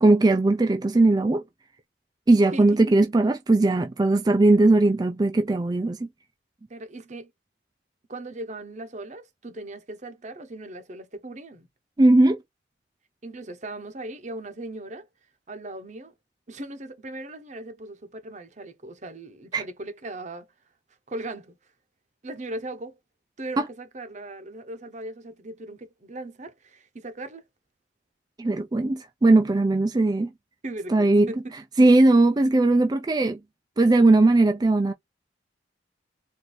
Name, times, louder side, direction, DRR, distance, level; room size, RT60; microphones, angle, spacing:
voice 1, 0.0-1.4 2.3-6.1 12.0-12.4 19.5-19.6 23.6-23.7 28.4-30.3 30.9-31.3 31.8-33.4 33.8-34.9, right 2 dB, 20° right, 0.4 m, -19 dB
voice 2, 6.7-7.3 8.1-11.7 13.2-15.0 15.5-16.1 16.5-20.5 21.1-21.6 22.2-23.0 23.4-27.4 30.6-31.4, right 2 dB, 40° right, 0.8 m, -38 dB
4.2 x 2.6 x 3.1 m
head